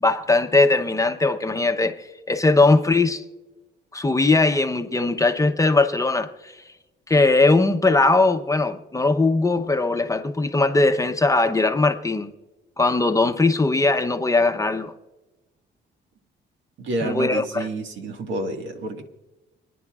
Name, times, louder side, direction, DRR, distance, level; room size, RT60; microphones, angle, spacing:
voice 1, 0.0-2.0 2.3-3.2 3.9-6.6 7.1-12.3 12.8-14.9 17.0-17.7, left 3 dB, 15° left, 0.8 m, -20 dB
voice 2, 16.8-19.0, right 2 dB, 70° right, 1.8 m, -29 dB
29.0 x 10.0 x 2.4 m
cardioid pair, 90°, 20 cm